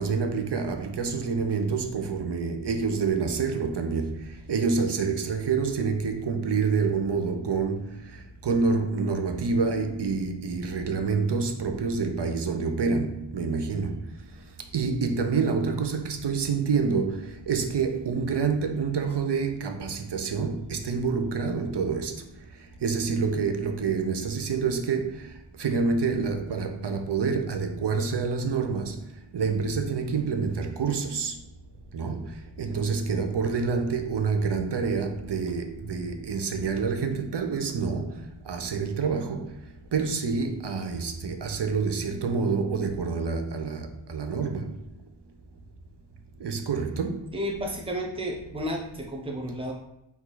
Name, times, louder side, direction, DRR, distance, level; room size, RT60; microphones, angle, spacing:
voice 1, 0.0-14.4 14.7-31.4 31.9-44.9 46.4-47.3, right 5 dB, 55° right, 0.8 m, -28 dB
voice 2, 47.3-49.7, equal, 10° right, 0.8 m, -32 dB
4.6 x 2.8 x 4.0 m
wide cardioid pair, 65°, 49 cm